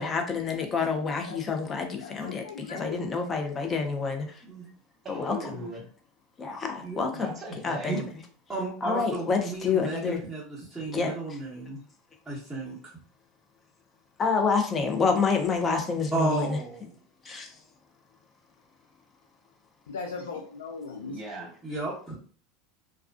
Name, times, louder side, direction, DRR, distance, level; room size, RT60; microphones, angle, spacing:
voice 1, 0.0-4.3 5.1-5.4 6.4-7.3 7.6-8.0 8.8-10.2 10.9-11.1 14.2-16.6 17.3-17.5, left 5 dB, 30° left, 4 dB, 0.6 m, -28 dB
voice 2, 2.0-3.0 19.9-21.2, left 4 dB, 90° left, 1 dB, 0.4 m, -38 dB
voice 3, 5.0-5.9 7.2-8.0 21.1-21.5, right 2 dB, 30° right, 0 dB, 1.1 m, -38 dB
voice 4, 6.8-7.2 7.9-8.0 8.5-11.8 12.3-12.8 16.1-16.9 21.6-22.2, right 2 dB, 5° right, -10 dB, 1.0 m, -33 dB
2.3 x 2.3 x 2.4 m, 0.43 s
hypercardioid pair, 95°, 0 cm